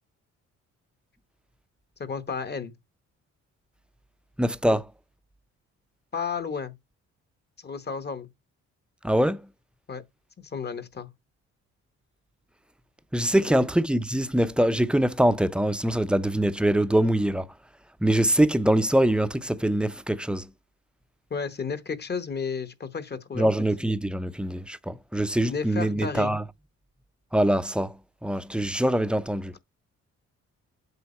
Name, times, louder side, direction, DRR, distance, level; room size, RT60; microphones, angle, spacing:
voice 1, 2.0-2.7 4.7-4.8 6.1-6.7 7.6-8.3 9.9-10.0 10.4-11.1 13.4-13.7 21.3-23.5 25.5-26.3, left 5 dB, 35° left, 1.1 m, -32 dB
voice 2, 4.4-4.9 9.0-9.5 13.1-17.5 18.0-20.5 23.3-26.4 27.3-28.0 28.2-29.5, right 1 dB, 5° right, 0.6 m, -23 dB
8.1 x 4.7 x 4.2 m
cardioid pair, 90°, 30 cm